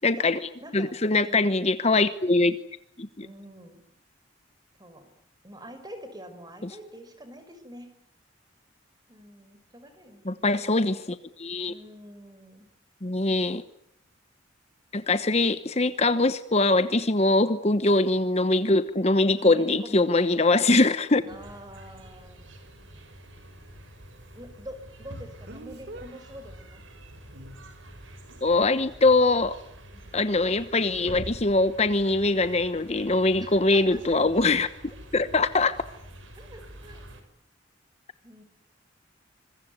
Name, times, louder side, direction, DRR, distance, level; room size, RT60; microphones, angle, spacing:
voice 1, 0.0-2.6 3.0-3.3 10.2-11.7 13.0-13.6 14.9-21.2 28.4-29.6 30.1-34.7 35.1-35.8, left 2 dB, 35° left, 12 dB, 1.1 m, -22 dB
voice 2, 0.6-1.0 1.3-1.5 3.2-3.8 4.8-5.1 5.4-7.9 9.1-10.8 11.7-12.7 19.3-20.2 21.3-22.4 24.3-26.8 29.9-30.2 33.4-34.0 34.8-35.0 36.4-37.0 38.2-38.4, equal, 20° right, 9 dB, 5.6 m, -45 dB
Speech, 20.2-20.3 25.5-26.1 27.3-27.6, right 2 dB, 60° right, 3.3 m, -43 dB
sound 1, 21.3-37.2, equal, 90° right, 6.0 m, -46 dB
26.5 x 22.5 x 9.5 m, 0.70 s
head